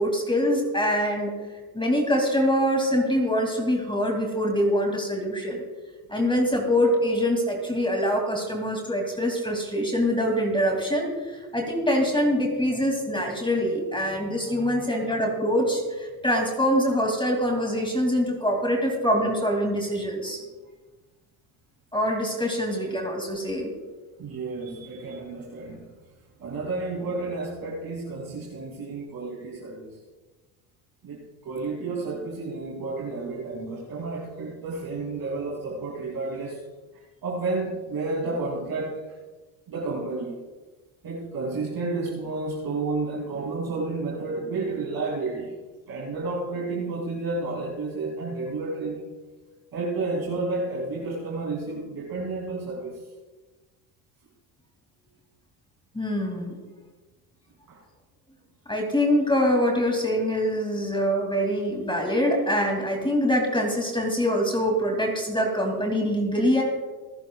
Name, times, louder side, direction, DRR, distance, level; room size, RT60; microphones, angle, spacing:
voice 1, 0.0-1.3 1.7-5.6 6.1-20.4 21.9-23.7 55.9-56.5 58.7-66.6, equal, 10° left, 1 dB, 2.5 m, -24 dB
voice 2, 14.5-15.3 24.2-25.9 26.4-30.0 31.0-36.6 36.9-39.0 39.7-40.4 41.0-45.5 45.9-49.1 49.7-53.0 57.7-57.8, right 3 dB, 50° right, -4 dB, 2.9 m, -31 dB
26.5 x 10.0 x 2.4 m, 1.3 s
supercardioid pair, 85°, 46 cm